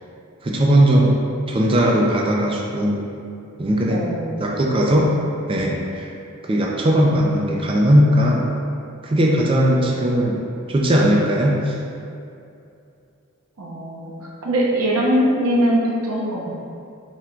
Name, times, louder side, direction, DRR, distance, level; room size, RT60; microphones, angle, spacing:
voice 1, 0.4-1.2 1.5-3.0 3.6-4.1 4.4-5.1 5.5-6.1 6.4-8.5 9.0-11.8, equal, 25° right, -2 dB, 0.4 m, -18 dB
voice 2, 3.9-4.6 13.6-14.1 14.4-16.6, equal, 80° right, -3 dB, 0.7 m, -21 dB
4.4 x 2.2 x 3.7 m, 2.6 s
head